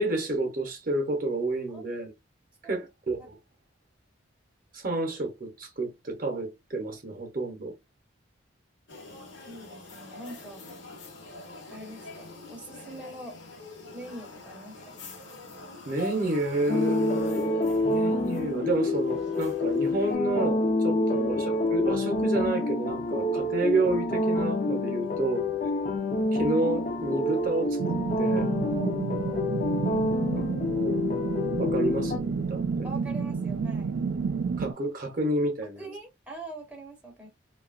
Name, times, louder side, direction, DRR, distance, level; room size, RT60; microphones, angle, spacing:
voice 1, 0.0-2.1 2.6-3.4 4.7-7.7 15.9-25.5 26.3-28.5 30.3-31.0 31.6-32.9 34.6-35.8, right 2 dB, 45° right, 0.7 m, -30 dB
sound 1, 8.9-20.2, left 2 dB, 70° left, 0.9 m, -45 dB
voice 2, 9.5-10.6 11.7-13.4 13.9-15.0 21.1-21.3 25.0-25.2 28.6-29.0 29.3-29.5 32.8-34.0 35.8-37.3, right 2 dB, 5° right, 0.6 m, -43 dB
sound 2, 16.7-32.2, left 2 dB, 40° left, 0.4 m, -27 dB
sound 3, 27.8-34.7, right 5 dB, 70° right, 0.3 m, -30 dB
2.7 x 2.3 x 2.3 m
head